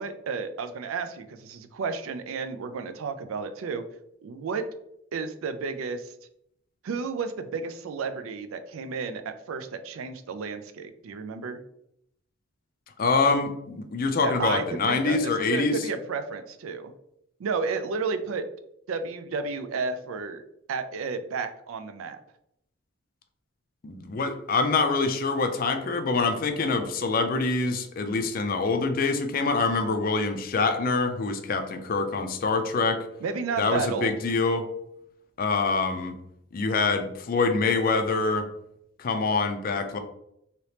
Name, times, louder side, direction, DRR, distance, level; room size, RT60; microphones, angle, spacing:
voice 1, 0.0-3.8 4.2-4.6 5.1-6.1 6.8-11.6 14.2-16.9 17.4-18.4 18.9-20.4 20.7-22.2 33.2-34.1, right 5 dB, 80° right, 9 dB, 0.4 m, -32 dB
voice 2, 13.0-15.8 23.8-33.1 33.6-34.7 35.4-36.1 36.5-38.5 39.0-40.0, left 4 dB, 45° left, 6 dB, 0.4 m, -25 dB
2.9 x 2.8 x 3.2 m, 0.77 s
head